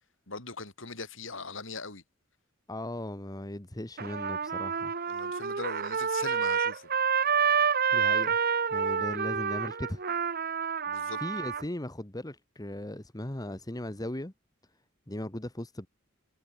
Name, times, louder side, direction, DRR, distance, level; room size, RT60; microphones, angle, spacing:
voice 1, 0.3-2.0 5.1-6.9 10.9-11.2, left 3 dB, 70° left, 6.7 m, -40 dB
voice 2, 2.7-4.9 7.9-8.4 8.7-10.0 11.2-14.3 15.1-15.9, left 1 dB, 20° left, 1.7 m, -37 dB
Trumpet, 4.0-11.6, right 6 dB, 50° right, 1.5 m, -28 dB
head